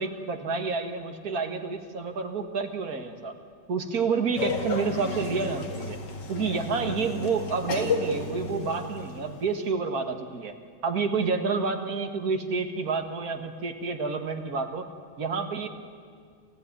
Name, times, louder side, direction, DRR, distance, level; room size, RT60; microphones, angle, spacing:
voice 1, 0.0-3.3 3.7-6.0 6.3-10.5 10.8-14.9 15.2-15.7, right 4 dB, 50° right, 6 dB, 2.0 m, -29 dB
Laughter, 4.4-9.4, left 3 dB, 65° left, 2.6 m, -32 dB
29.0 x 14.0 x 9.5 m, 2.1 s
omnidirectional pair, 2.1 m